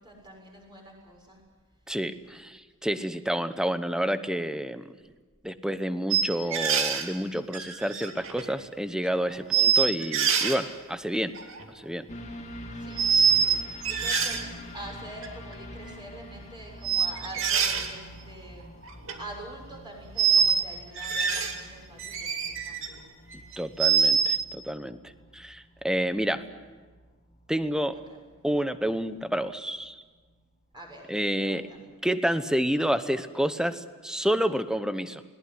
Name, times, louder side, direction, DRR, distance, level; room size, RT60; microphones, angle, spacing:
voice 1, 0.0-1.4 9.3-9.4 12.8-13.0 13.4-13.6 13.9-14.5 14.7-18.7 19.2-23.0 30.7-31.0 31.4-31.9, right 1 dB, 20° right, 0 dB, 6.9 m, -45 dB
voice 2, 1.9-4.8 5.4-11.3 11.7-12.1 23.6-25.0 25.3-26.4 27.5-28.0 28.4-30.0 31.1-31.7 32.0-35.2, equal, 5° right, 11 dB, 0.9 m, -29 dB
sound 1, 6.1-7.1 7.5-8.5 9.0-9.1 9.5-10.6 11.3-11.7 13.0-13.6 13.8-14.4 15.2-15.3 16.8-17.9 18.8-19.2 20.2-20.6 21.0-21.6 22.0-22.9 23.3-24.4, right 7 dB, 65° right, 2.5 m, -24 dB
sound 2, 12.1-29.9 30.3-30.4, equal, 35° left, 2.3 m, -46 dB
21.0 x 18.5 x 9.8 m, 1.4 s
head